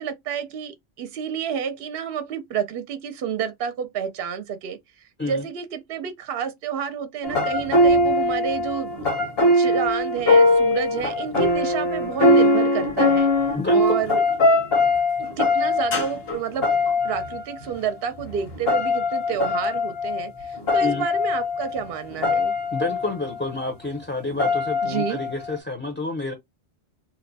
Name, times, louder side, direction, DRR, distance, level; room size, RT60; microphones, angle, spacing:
voice 1, 0.0-9.0 9.5-14.2 15.2-16.7 17.0-22.5 24.8-25.2, right 7 dB, 70° right, 0.7 m, -30 dB
sound 1, 7.2-17.8 18.2-23.6 24.3-25.6, left 2 dB, 70° left, 1.2 m, -21 dB
voice 2, 13.5-13.9 20.8-21.1 22.7-26.3, left 2 dB, 15° left, 0.6 m, -29 dB
2.8 x 2.1 x 3.9 m
omnidirectional pair, 1.1 m